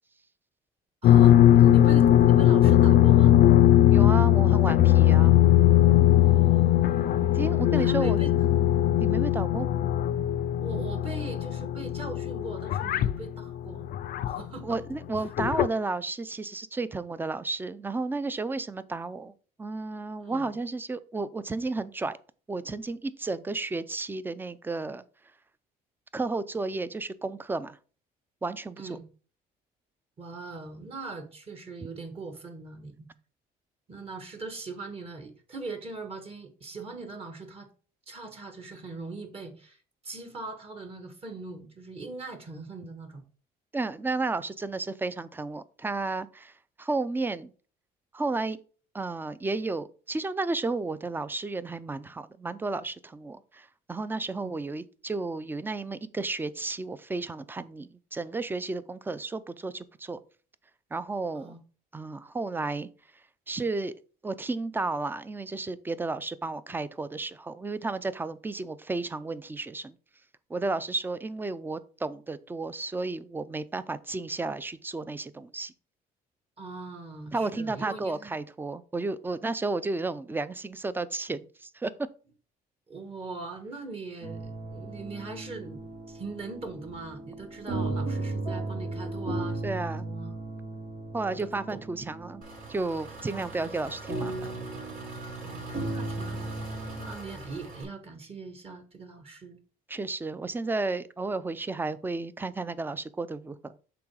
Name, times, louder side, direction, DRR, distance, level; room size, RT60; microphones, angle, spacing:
sound 1, 1.0-14.5 15.1-15.7, left 12 dB, 60° left, 0.5 m, -20 dB
voice 1, 1.0-3.4 6.2-7.3 7.7-8.3 10.6-13.9 14.2-14.8 20.2-20.5 28.8-29.0 30.2-33.1 33.9-37.7 38.1-39.8 40.0-43.2 54.3-54.5 61.3-61.6 76.6-78.3 82.9-85.8 86.1-90.4 91.2-91.8 93.2-93.8 95.4-96.7 97.0-99.6, right 3 dB, 35° right, 1.4 m, -41 dB
voice 2, 3.9-5.3 7.3-8.2 9.0-9.7 14.6-19.3 19.6-22.2 22.5-25.0 26.1-27.8 28.4-29.0 43.7-46.5 46.8-47.5 48.1-48.6 48.9-60.2 60.9-61.5 61.9-62.9 63.5-63.9 64.2-69.9 70.5-75.7 77.3-81.9 89.6-90.1 91.1-94.5 99.9-103.8, right 3 dB, 10° right, 0.4 m, -32 dB
sound 2, 84.2-97.1, right 2 dB, 90° right, 3.2 m, -36 dB
Engine, 92.4-97.8, right 2 dB, 55° right, 3.4 m, -43 dB
6.0 x 4.0 x 4.7 m
cardioid pair, 110°, 17 cm